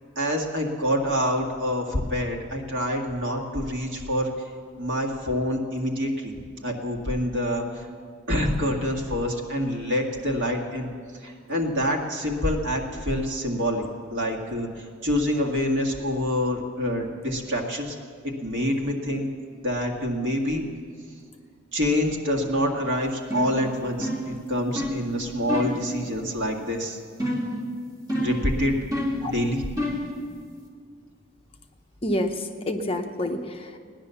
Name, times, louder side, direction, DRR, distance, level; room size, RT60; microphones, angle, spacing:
voice 1, 0.2-4.3 4.8-7.9 8.3-10.9 11.2-13.8 14.1-18.0 18.2-19.3 19.6-20.6 21.7-27.0 28.2-28.8 29.2-29.6, equal, 65° right, 0 dB, 2.0 m, -26 dB
sound 1, 23.3-23.6 24.0-24.3 24.8-25.0 25.5-25.8 27.2-27.6 28.1-28.5 28.9-29.3 29.8-30.1, left 1 dB, 20° right, 2.5 m, -27 dB
voice 2, 32.0-33.8, left 1 dB, 30° left, 5 dB, 0.8 m, -28 dB
17.0 x 10.5 x 7.0 m, 2.1 s
head